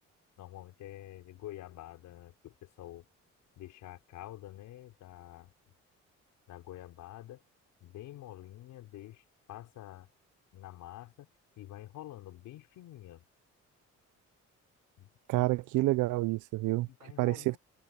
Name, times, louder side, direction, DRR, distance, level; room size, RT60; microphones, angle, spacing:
voice 1, 0.4-3.1 3.6-5.5 6.5-7.4 7.8-10.1 10.5-11.3 11.6-13.2 15.0-15.1 15.4-15.5 16.9-17.6, left 14 dB, 90° left, 5.3 m, -48 dB
voice 2, 15.3-16.9 17.2-17.6, right 19 dB, 85° right, 0.5 m, -28 dB
cardioid pair, 90°, 30 cm